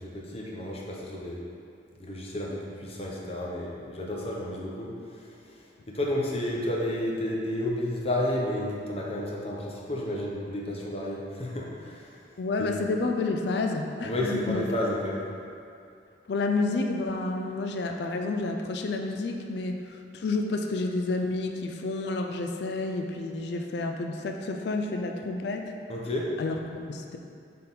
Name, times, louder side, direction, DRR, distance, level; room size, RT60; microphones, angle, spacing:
voice 1, 0.0-1.4 2.0-12.1 12.6-12.7 14.0-15.3 25.9-26.4, left 1 dB, 35° left, -3 dB, 0.8 m, -31 dB
voice 2, 12.4-14.7 16.3-25.7 26.4-27.2, left 3 dB, 65° left, 3 dB, 0.4 m, -30 dB
6.6 x 3.7 x 4.0 m, 2.4 s
head